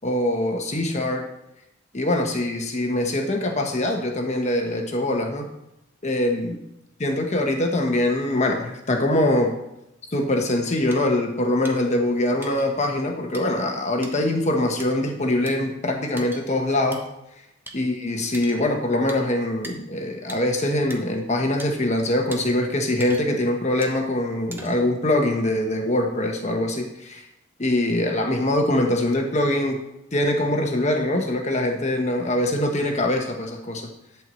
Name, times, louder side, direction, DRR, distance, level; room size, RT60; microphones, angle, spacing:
voice 1, 0.0-1.3 1.9-5.5 6.0-6.6 7.0-9.6 10.1-17.1 17.7-27.3 27.6-29.8 30.1-33.9, left 1 dB, 35° left, 3 dB, 1.1 m, -23 dB
sound 1, 10.9-11.0 11.6-11.8 12.4-12.7 13.3-13.4 14.0-14.1 14.8-14.9 15.5-15.6 16.2-16.4 16.9-17.0 17.7-17.8 18.3-18.6 19.1-19.2 19.6-19.8 20.3-20.4 20.9-21.0 21.6-21.7 22.3-22.4 23.0-23.4 23.8-24.0 24.5-24.9, right 2 dB, 10° right, 1.2 m, -39 dB
11.5 x 4.7 x 7.5 m, 0.87 s
head